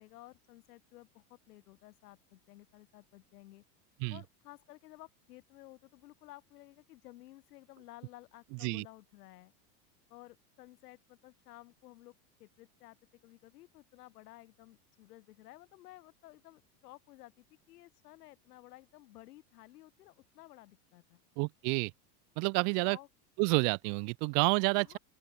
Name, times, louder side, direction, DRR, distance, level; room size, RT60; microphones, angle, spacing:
voice 1, 0.0-3.6 4.1-9.5 10.1-12.1 12.4-13.0 13.2-21.2 22.5-23.1 24.8-25.0, left 17 dB, 75° left, 4.5 m, -55 dB
voice 2, 21.4-21.9 22.4-23.0 23.4-25.0, right 40 dB or more, 40° right, 0.7 m, -29 dB
open air
supercardioid pair, 150°, 46 cm